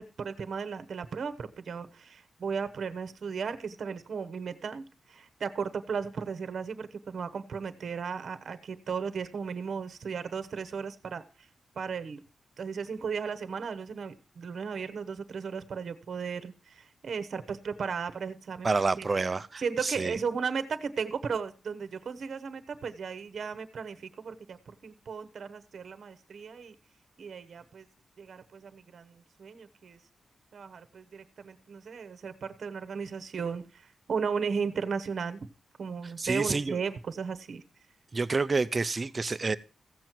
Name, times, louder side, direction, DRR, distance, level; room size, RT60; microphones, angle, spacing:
voice 1, 0.0-11.2 11.8-12.2 12.6-18.7 19.0-19.1 19.6-26.7 27.2-27.9 28.2-30.0 30.5-35.5 35.8-37.6, right 6 dB, 60° right, 1.0 m, -35 dB
voice 2, 18.6-20.2 36.2-36.7 38.1-39.6, right 3 dB, 30° right, 0.5 m, -28 dB
15.0 x 7.6 x 4.5 m
wide cardioid pair, 145°, 0 cm